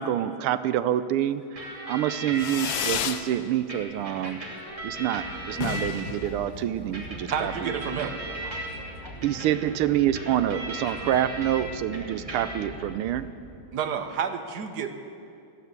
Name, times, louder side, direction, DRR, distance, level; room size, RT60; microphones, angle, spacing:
voice 1, 0.0-4.4 4.8-8.1 9.2-13.3, right 11 dB, 85° right, 13 dB, 1.5 m, -27 dB
sound 1, 1.6-3.0 3.7-6.3 6.9-11.6 11.9-12.8, right 2 dB, 15° right, 2.8 m, -37 dB
voice 2, 2.1-2.6 4.4-5.2 5.7-5.9 7.1-7.6 8.1-9.4 10.0-10.1 10.4-11.1 11.7-12.2, left 2 dB, 15° left, 2 dB, 1.0 m, -50 dB
Fireworks, 2.3-3.3 3.6-4.2 4.5-4.6 4.8-4.9 5.2-5.3 5.5-7.2, left 10 dB, 70° left, 1.3 m, -32 dB
sound 2, 4.7-13.8, right 1 dB, 50° left, 3.7 m, -44 dB
voice 3, 7.3-8.1 13.7-15.0, right 7 dB, 55° right, 7 dB, 1.3 m, -30 dB
16.0 x 11.0 x 8.1 m, 2.5 s
omnidirectional pair, 2.4 m